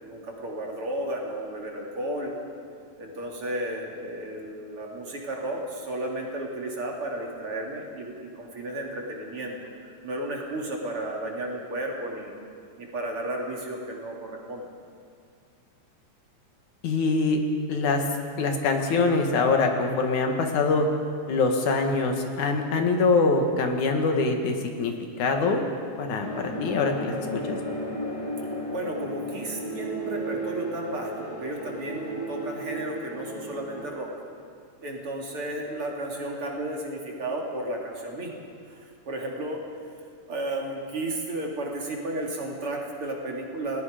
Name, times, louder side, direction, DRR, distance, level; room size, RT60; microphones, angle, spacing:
voice 1, 0.0-2.3 3.0-9.6 9.8-12.3 12.8-14.7 28.4-34.1 34.8-39.6 40.3-43.8, right 1 dB, 45° right, -1 dB, 3.4 m, -33 dB
voice 2, 16.8-17.4 17.7-18.0 18.4-20.9 21.3-25.6 26.0-27.6, left 3 dB, 80° left, 4 dB, 3.2 m, -24 dB
sound 1, 26.2-33.9, right 1 dB, 15° left, 1.6 m, -34 dB
28.5 x 19.0 x 5.1 m, 2.3 s
omnidirectional pair, 3.4 m